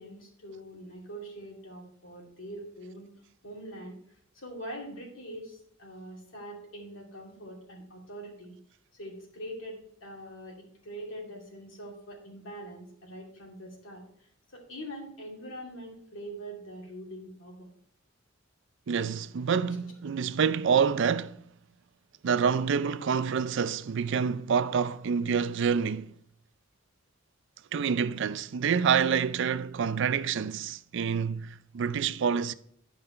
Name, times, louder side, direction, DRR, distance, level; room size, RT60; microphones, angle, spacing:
voice 1, 0.0-3.1 3.4-4.0 4.3-8.6 8.9-17.7, right 1 dB, 70° left, 2.6 m, -43 dB
voice 2, 18.9-21.4 22.2-26.1 27.7-32.5, right 6 dB, 65° right, 0.4 m, -27 dB
10.5 x 5.2 x 4.4 m
head